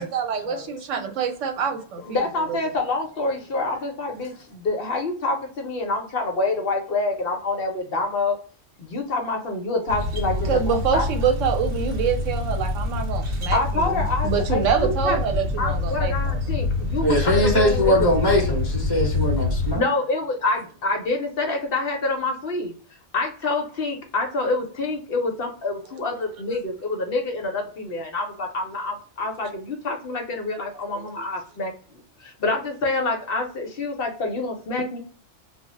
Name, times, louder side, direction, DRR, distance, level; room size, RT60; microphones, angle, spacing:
voice 1, 0.0-2.6 10.4-16.1, right 7 dB, 85° right, 1.0 m, -26 dB
voice 2, 2.1-8.4 8.8-11.0 13.5-15.2 15.6-18.2 19.7-22.7 23.1-31.7 32.2-35.0, left 3 dB, 60° left, 0.8 m, -27 dB
wayside at harbor, 9.9-19.8, left 3 dB, 55° right, 1.0 m, -26 dB
voice 3, 17.0-19.8, equal, 25° left, 0.6 m, -21 dB
2.2 x 2.1 x 3.6 m
omnidirectional pair, 1.3 m